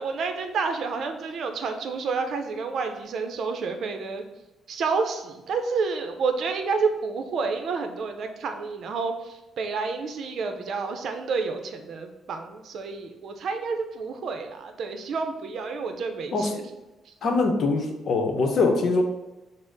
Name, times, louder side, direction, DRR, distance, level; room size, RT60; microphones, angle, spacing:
voice 1, 0.0-4.2 4.7-16.6, right 4 dB, 65° right, 6 dB, 0.6 m, -29 dB
voice 2, 17.2-19.0, left 3 dB, 60° left, 3 dB, 0.8 m, -23 dB
6.1 x 2.1 x 3.8 m, 1.0 s
cardioid pair, 90°, 0 cm